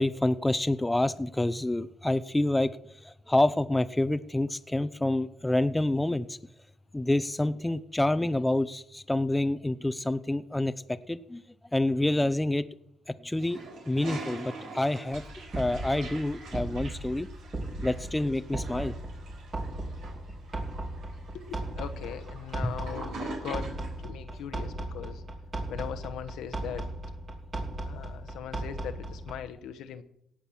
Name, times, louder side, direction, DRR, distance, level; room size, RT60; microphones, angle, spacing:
voice 1, 0.0-2.8 3.0-6.4 6.9-11.4 11.7-12.6 13.1-15.2 15.5-17.3 17.8-18.9 22.6-22.7, left 1 dB, 10° left, 13 dB, 0.6 m, -27 dB
Toilet flush, 13.4-24.0, right 3 dB, 80° right, 4.3 m, -44 dB
sound 1, 15.1-29.5, right 1 dB, 40° right, 2.9 m, -37 dB
voice 2, 21.3-23.7 24.0-25.2 25.7-26.9 27.8-30.0, left 9 dB, 85° left, 8 dB, 1.0 m, -39 dB
17.5 x 6.0 x 7.1 m, 0.75 s
cardioid pair, 90°, 0 cm